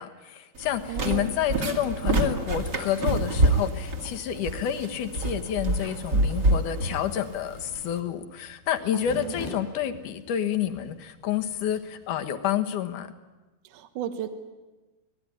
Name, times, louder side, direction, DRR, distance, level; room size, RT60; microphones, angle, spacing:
voice 1, 0.0-13.1, left 10 dB, 65° left, 7 dB, 2.6 m, -29 dB
sound 1, 0.6-8.0, right 2 dB, 35° right, 2.2 m, -27 dB
voice 2, 0.9-1.3 8.9-9.3 13.7-14.3, right 9 dB, 65° right, 8 dB, 2.7 m, -34 dB
sound 2, 1.1-12.3, left 2 dB, 80° left, 7.1 m, -46 dB
26.0 x 19.0 x 9.9 m, 1.2 s
omnidirectional pair, 4.3 m